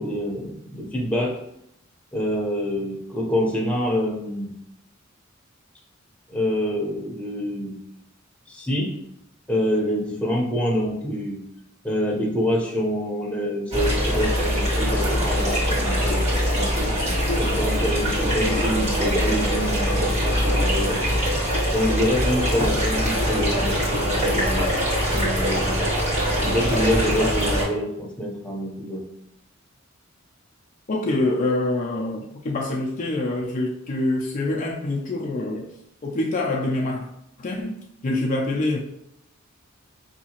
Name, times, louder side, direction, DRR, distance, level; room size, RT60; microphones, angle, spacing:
voice 1, 0.0-1.3 2.1-4.5 6.3-7.8 8.5-8.9 9.5-11.4 11.8-16.9 17.4-21.0 21.7-24.8 25.1-25.8 26.4-29.1, equal, 5° left, -2 dB, 0.7 m, -26 dB
sound 1, 13.7-27.6, equal, 35° right, 1.4 m, -23 dB
voice 2, 30.9-35.7 36.0-37.1 37.4-37.8 38.0-38.8, left 2 dB, 40° left, -2 dB, 0.4 m, -25 dB
5.0 x 2.8 x 2.9 m, 0.77 s
head